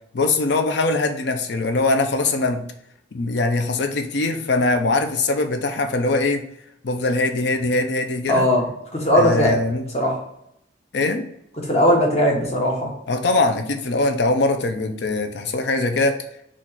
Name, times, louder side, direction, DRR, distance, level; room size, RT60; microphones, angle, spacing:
voice 1, 0.1-2.6 3.1-6.4 6.8-8.5 9.2-9.8 10.9-11.2 13.1-16.2, left 2 dB, 70° left, 6 dB, 0.5 m, -22 dB
voice 2, 8.3-8.7 8.9-9.6 9.9-10.2 11.7-12.9, equal, 35° left, -1 dB, 1.1 m, -18 dB
4.2 x 2.5 x 4.4 m, 0.77 s
head